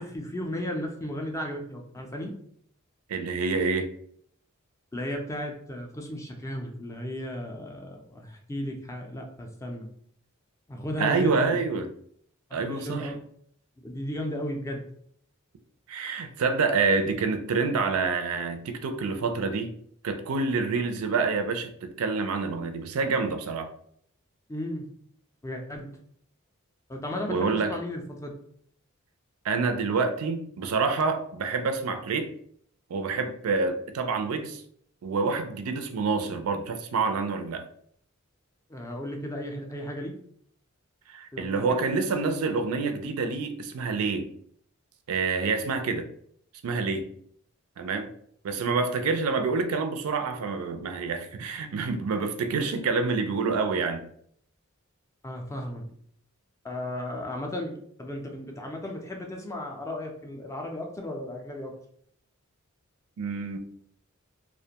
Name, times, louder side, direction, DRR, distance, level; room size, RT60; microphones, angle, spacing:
voice 1, 0.0-2.3 4.9-9.9 10.7-11.6 12.5-13.2 13.8-14.8 24.5-24.9 25.4-25.9 26.9-28.3 38.7-40.1 41.3-41.8 55.2-55.9 56.6-61.7, left 1 dB, 15° left, 1 dB, 0.4 m, -35 dB
voice 2, 3.1-3.9 11.0-11.9 12.5-13.1 15.9-19.7 20.0-23.7 27.3-27.7 29.4-32.3 32.9-34.6 35.0-37.7 41.1-44.3 45.1-46.1 46.6-47.1 47.8-48.1 48.4-54.1 63.2-63.6, right 4 dB, 75° right, 7 dB, 0.4 m, -27 dB
2.4 x 2.1 x 2.8 m, 0.65 s
head